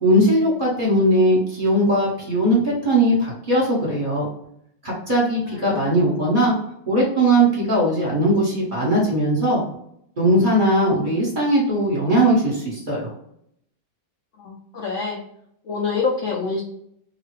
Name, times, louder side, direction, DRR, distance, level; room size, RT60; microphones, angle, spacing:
voice 1, 0.0-4.3 4.8-6.6 6.9-9.6 10.2-13.1, right 1 dB, 30° right, -5 dB, 1.2 m, -19 dB
voice 2, 5.5-6.0 14.4-15.2 15.6-16.6, left 4 dB, 70° left, -3 dB, 0.7 m, -26 dB
2.8 x 2.3 x 3.1 m, 0.71 s
omnidirectional pair, 1.9 m